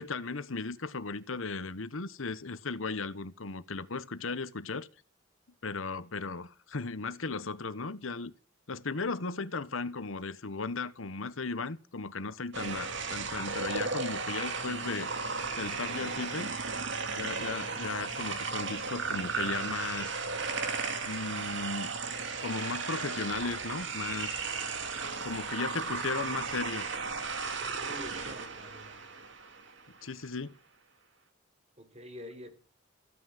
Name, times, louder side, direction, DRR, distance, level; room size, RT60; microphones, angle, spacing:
voice 1, 0.0-4.9 5.6-8.3 8.7-15.3 15.6-16.5 17.2-20.2 21.0-21.9 22.4-24.4 25.2-26.9 30.0-30.6, left 4 dB, 80° left, 1.1 m, -36 dB
sound 1, 12.5-29.9, right 4 dB, 60° right, 2.4 m, -35 dB
voice 2, 27.6-29.0 31.8-32.5, equal, 30° right, 3.8 m, -47 dB
15.5 x 9.6 x 9.0 m
head